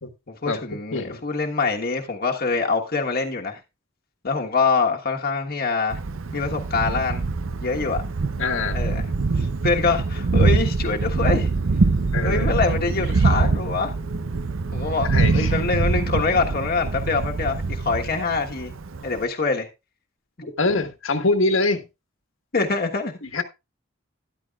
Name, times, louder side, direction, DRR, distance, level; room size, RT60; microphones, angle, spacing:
voice 1, 0.3-3.6 4.2-6.0 6.3-7.2 7.6-8.0 8.7-9.1 9.4-11.5 12.2-13.9 14.7-18.7 19.0-19.7 20.4-20.5 22.5-23.2, left 4 dB, 50° left, 1.4 m, -24 dB
Thunder, 5.9-19.2, right 3 dB, 80° right, 0.7 m, -24 dB
voice 2, 8.4-8.8 12.1-12.5 15.1-15.6 20.6-21.8 23.3-23.4, left 3 dB, 80° left, 1.5 m, -23 dB
13.0 x 11.5 x 2.4 m
head